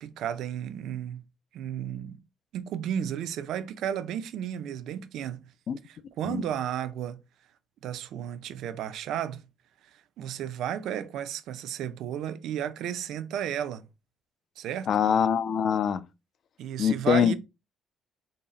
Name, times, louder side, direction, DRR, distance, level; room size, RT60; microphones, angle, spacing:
voice 1, 0.0-1.2 1.5-2.2 2.5-5.5 5.9-7.2 7.8-9.4 10.2-13.8 14.6-14.9 16.6-17.3, right 9 dB, 70° right, 0.4 m, -33 dB
voice 2, 14.9-16.1 16.8-17.3, left 8 dB, 50° left, 0.3 m, -24 dB
3.9 x 2.0 x 3.9 m
cardioid pair, 150°, 0 cm